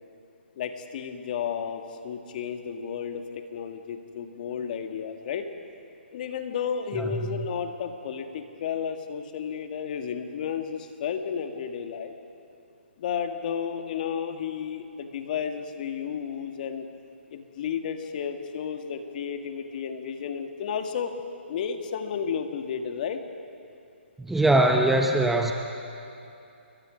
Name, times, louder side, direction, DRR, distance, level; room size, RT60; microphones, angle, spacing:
voice 1, 0.6-5.5 6.1-12.1 13.0-16.9 17.3-21.1 21.5-23.2, left 7 dB, 45° left, 6 dB, 1.9 m, -32 dB
voice 2, 24.2-25.5, right 1 dB, 5° right, 2 dB, 0.9 m, -21 dB
28.0 x 23.0 x 5.2 m, 2.7 s
hypercardioid pair, 145°, 7 cm